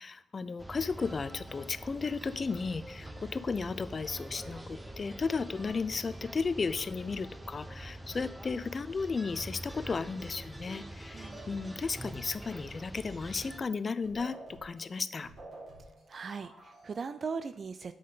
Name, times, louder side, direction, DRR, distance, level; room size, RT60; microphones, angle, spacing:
voice 1, 0.0-15.3, left 4 dB, 45° left, 14 dB, 0.4 m, -34 dB
sound 1, 0.6-13.6, right 1 dB, 15° right, 0.9 m, -45 dB
voice 2, 11.1-11.5 16.1-17.9, right 5 dB, 50° right, 11 dB, 0.4 m, -39 dB
sound 2, 11.3-12.1 13.7-13.8 14.0-17.0, right 2 dB, 70° right, 3.2 m, -50 dB
7.6 x 5.1 x 4.0 m, 0.77 s
cardioid pair, 65°, 0 cm